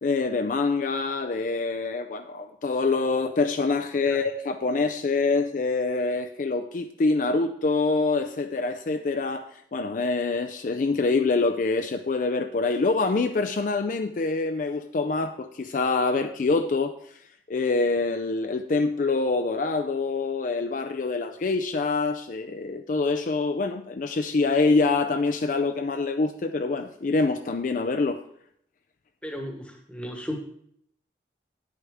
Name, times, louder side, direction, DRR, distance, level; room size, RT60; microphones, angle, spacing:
voice 1, 0.0-9.5 9.7-16.9 17.5-28.2, left 3 dB, 45° left, 8 dB, 0.4 m, -25 dB
voice 2, 29.2-30.4, equal, 5° left, 3 dB, 1.1 m, -35 dB
9.7 x 8.1 x 3.5 m, 0.68 s
head